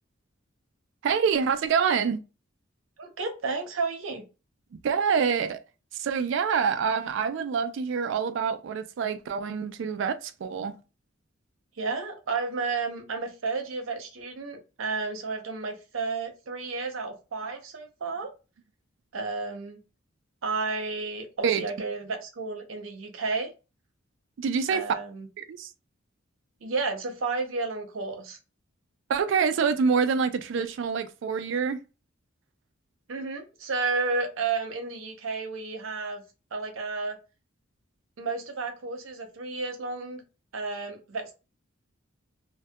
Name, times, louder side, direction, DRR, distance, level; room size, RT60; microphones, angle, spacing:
voice 1, 1.0-2.2 4.8-5.6 6.0-10.7 21.4-21.6 24.4-24.8 25.4-25.7 29.1-31.8, right 6 dB, 65° right, 0.3 m, -26 dB
voice 2, 3.0-4.2 11.8-18.3 19.1-19.8 20.4-23.5 24.7-25.3 26.6-28.4 33.1-36.2 36.5-37.2 38.2-40.2 40.5-41.3, right 4 dB, 90° right, 0.7 m, -32 dB
2.6 x 2.1 x 2.2 m
head